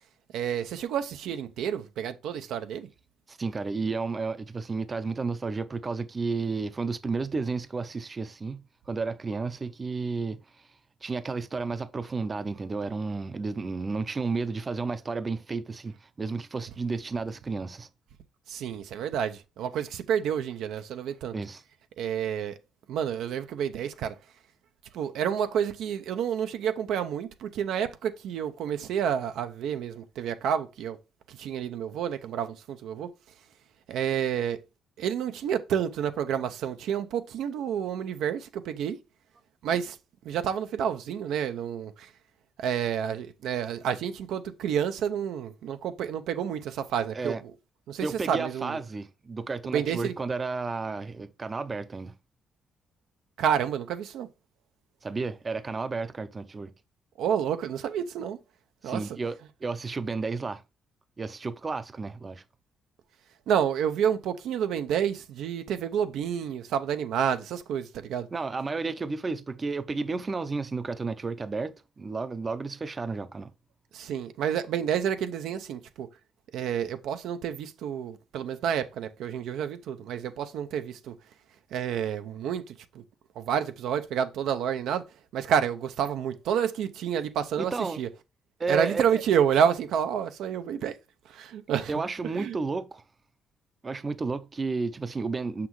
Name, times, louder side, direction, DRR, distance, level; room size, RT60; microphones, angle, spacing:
voice 1, 0.3-2.9 18.5-21.3 22.0-22.6 22.9-24.1 24.9-31.0 31.3-33.1 33.9-34.6 35.0-39.0 39.6-40.0 40.2-42.1 42.6-47.4 47.9-48.8 49.6-50.1 53.4-54.3 57.2-58.4 58.8-59.1 63.5-68.3 73.9-76.1 76.5-81.2 81.7-83.0 83.4-85.0 85.3-88.1 88.7-90.9 91.3-91.9 92.4-92.6, right 8 dB, 85° right, 0.6 m, -29 dB
voice 2, 3.3-10.4 11.0-17.9 21.3-21.6 47.1-47.4 48.0-52.1 55.0-56.7 58.8-60.6 61.2-62.4 68.3-73.5 87.6-88.0 88.6-89.2 91.9-93.0 93.8-95.7, right 4 dB, 30° right, 0.6 m, -32 dB
6.0 x 5.9 x 3.1 m
cardioid pair, 90°, 0 cm